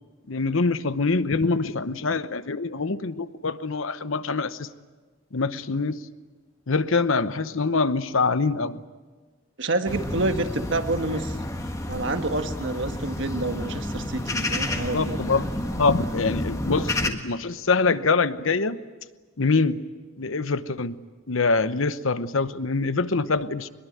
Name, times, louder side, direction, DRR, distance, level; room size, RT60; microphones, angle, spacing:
voice 1, 0.3-4.7 5.3-6.0 6.7-8.8 14.9-15.5 15.8-18.8 19.4-19.8 20.2-21.0 21.3-23.7, left 4 dB, 75° left, 13 dB, 0.9 m, -24 dB
voice 2, 9.6-11.4 11.9-15.2, right 2 dB, 60° right, 7 dB, 1.5 m, -28 dB
sound 1, 9.9-17.1, left 1 dB, 15° left, 1.5 m, -30 dB
23.0 x 22.0 x 9.3 m, 1.3 s
head